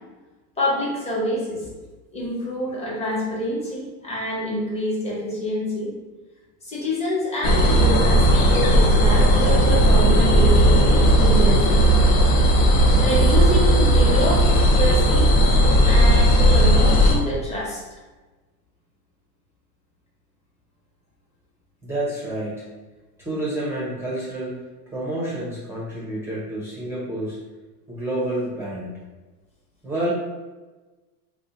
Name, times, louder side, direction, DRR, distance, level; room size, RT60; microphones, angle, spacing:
voice 1, 0.6-1.7 2.1-5.9 6.6-11.9 13.0-15.3 15.8-17.8, left 1 dB, 15° left, -5 dB, 0.9 m, -27 dB
sound 1, 7.4-17.1, equal, 75° left, 0.9 m, -16 dB
voice 2, 21.8-22.7 23.2-24.5 24.9-27.4 27.9-29.0 29.8-30.1, right 1 dB, 5° right, -7 dB, 0.6 m, -29 dB
2.6 x 2.2 x 3.8 m, 1.2 s
supercardioid pair, 120°, 45 cm